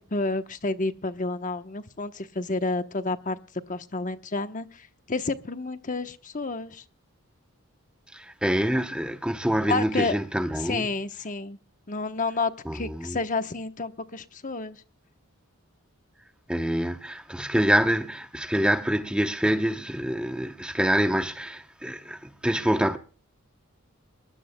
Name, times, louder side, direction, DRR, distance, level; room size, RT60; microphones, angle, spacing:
voice 1, 0.0-3.4 3.7-6.8 9.7-10.2 10.6-11.6 11.9-14.8, left 3 dB, 35° left, 1.0 m, -30 dB
voice 2, 8.1-10.9 12.7-13.2 16.5-23.0, equal, 5° right, 0.8 m, -26 dB
22.0 x 21.0 x 2.2 m
head